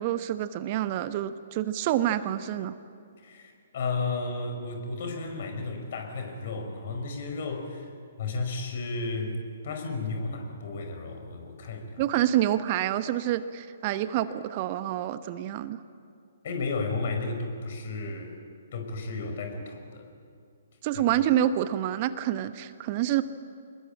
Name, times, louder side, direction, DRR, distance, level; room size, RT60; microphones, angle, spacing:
voice 1, 0.0-2.8 12.0-15.8 20.8-23.2, right 12 dB, 35° right, 12 dB, 0.9 m, -27 dB
voice 2, 3.2-7.9 8.2-9.4 9.6-12.0 16.4-18.4 18.7-20.1 20.9-21.0, left 3 dB, 50° left, 5 dB, 5.3 m, -33 dB
26.5 x 21.0 x 8.8 m, 2.4 s
figure-of-eight pair, 125°, 0 cm